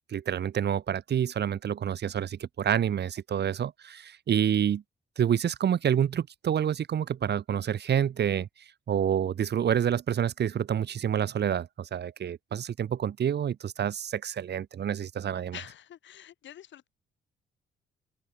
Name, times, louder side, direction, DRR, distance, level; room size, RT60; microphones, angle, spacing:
voice 1, 0.1-4.8 5.2-8.5 8.9-15.6, right 9 dB, 60° right, 2.6 m, -28 dB
voice 2, 15.5-16.9, left 10 dB, 70° left, 4.8 m, -46 dB
open air
cardioid pair, 90°, 20 cm